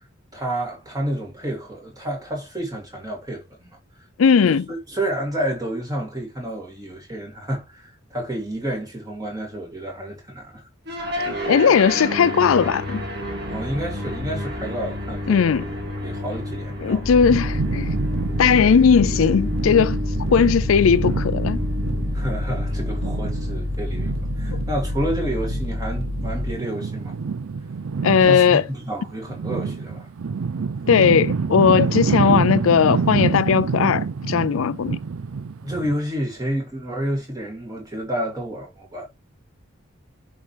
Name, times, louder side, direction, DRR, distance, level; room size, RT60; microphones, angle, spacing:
voice 1, 0.3-3.7 4.4-10.6 13.4-15.6 16.0-17.0 22.1-27.1 28.3-30.1 35.6-39.1, right 1 dB, 20° right, 2.7 m, -30 dB
voice 2, 4.2-4.7 11.2-13.0 15.3-15.6 16.8-17.9 18.4-20.0 20.3-21.6 24.5-24.6 28.0-28.6 30.9-35.0, left 6 dB, 80° left, 0.4 m, -18 dB
sound 1, 10.9-29.2, left 1 dB, 55° right, 2.3 m, -32 dB
sound 2, 17.0-26.6, left 1 dB, 30° left, 0.7 m, -28 dB
sound 3, 17.2-35.9, right 5 dB, 85° right, 0.5 m, -27 dB
10.5 x 4.3 x 3.4 m
head